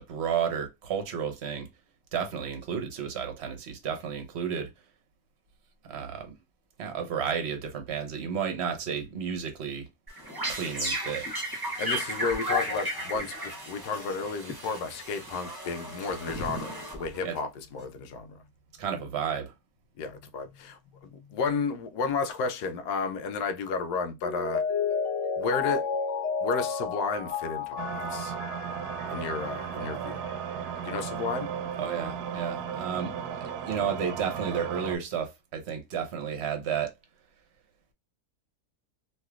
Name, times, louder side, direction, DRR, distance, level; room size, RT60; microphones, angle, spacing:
voice 1, 0.0-1.7 2.1-4.7 5.9-6.4 6.8-9.9 10.5-11.3 17.2-17.4 18.8-19.5 31.8-36.9, right 7 dB, 50° right, 0.9 m, -32 dB
sound 1, 10.1-17.4, equal, 15° right, 0.8 m, -34 dB
voice 2, 11.8-18.4 20.0-24.6 25.4-25.8 26.4-28.3 29.1-30.2 30.8-31.5, left 4 dB, 80° left, 1.2 m, -32 dB
Mallet percussion, 24.2-29.7 30.1-30.2, left 6 dB, 60° left, 1.0 m, -32 dB
sound 2, 27.8-35.0, right 7 dB, 80° right, 1.1 m, -35 dB
3.1 x 2.8 x 2.3 m
omnidirectional pair, 1.7 m